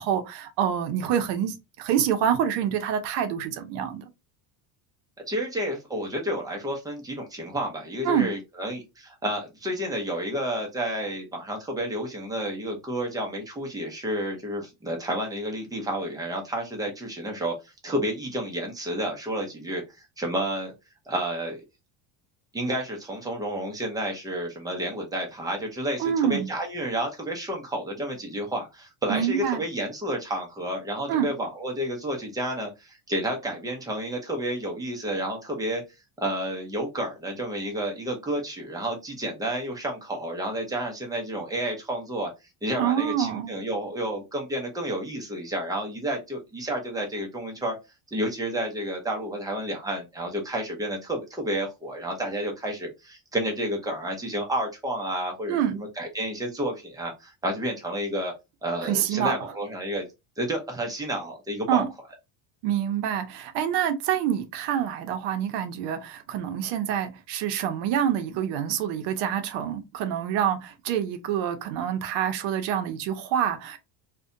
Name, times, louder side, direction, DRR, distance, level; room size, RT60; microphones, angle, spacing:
voice 1, 0.0-4.0 8.0-8.3 26.0-26.5 29.1-29.6 31.1-31.3 42.8-43.5 55.5-55.8 58.8-59.3 61.7-61.9 62.6-73.8, right 9 dB, 60° right, 0.6 m, -26 dB
voice 2, 5.3-17.5 17.8-20.7 21.1-21.6 22.5-35.8 36.2-42.3 42.6-47.8 48.1-58.3 58.6-60.0 60.4-61.9, right 1 dB, 10° right, 0.4 m, -30 dB
2.6 x 2.1 x 2.5 m
cardioid pair, 150°, 46 cm